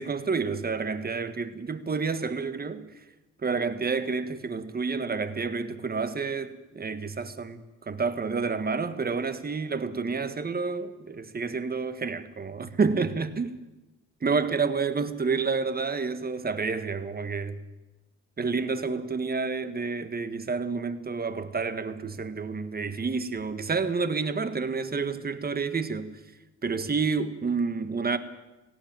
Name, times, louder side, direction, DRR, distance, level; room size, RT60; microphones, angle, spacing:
voice 1, 0.0-2.9 3.4-13.6 14.2-17.6 18.4-26.2 26.6-28.2, right 4 dB, 30° right, 1.7 m, -29 dB
18.0 x 16.0 x 9.1 m
cardioid pair, 90°, 30 cm